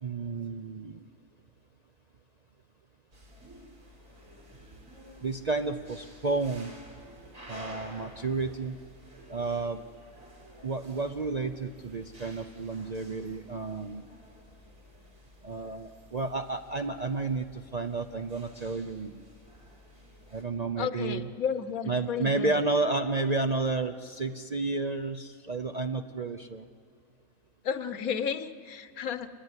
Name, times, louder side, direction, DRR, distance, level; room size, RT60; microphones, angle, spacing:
voice 1, 0.0-1.0 5.2-6.7 7.5-8.8 9.3-9.8 10.6-14.0 15.4-19.2 20.3-21.3 21.9-26.7, right 3 dB, 40° right, 8 dB, 0.6 m, -31 dB
sound 1, 3.1-20.4, equal, 65° right, 4.2 m, -52 dB
voice 2, 20.8-22.6 27.6-29.3, left 7 dB, 75° left, 12 dB, 1.4 m, -32 dB
25.5 x 20.0 x 9.7 m, 2.1 s
omnidirectional pair, 1.5 m